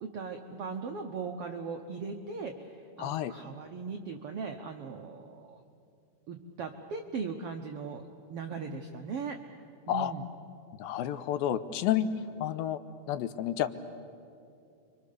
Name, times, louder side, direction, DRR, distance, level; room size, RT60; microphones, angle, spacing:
voice 1, 0.0-5.6 6.3-9.4 9.9-10.3, right 5 dB, 75° right, 4 dB, 1.3 m, -39 dB
voice 2, 3.0-3.3 9.9-10.1 10.8-12.1 12.4-12.8 13.1-13.7, left 11 dB, 85° left, 11 dB, 2.7 m, -30 dB
30.0 x 24.0 x 6.8 m, 2.5 s
omnidirectional pair, 4.1 m